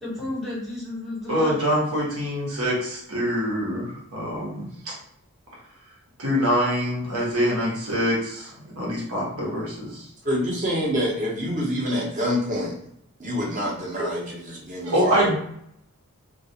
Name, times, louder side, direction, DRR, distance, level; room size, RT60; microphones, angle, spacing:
voice 1, 0.0-1.6 14.0-14.1, left 1 dB, ahead, -7 dB, 0.8 m, -32 dB
voice 2, 1.3-4.9 6.2-10.1 14.8-15.3, equal, 90° right, -4 dB, 1.0 m, -25 dB
voice 3, 10.2-12.8 13.2-14.2 14.7-15.3, equal, 35° right, -1 dB, 0.6 m, -26 dB
2.3 x 2.3 x 2.7 m, 0.72 s
head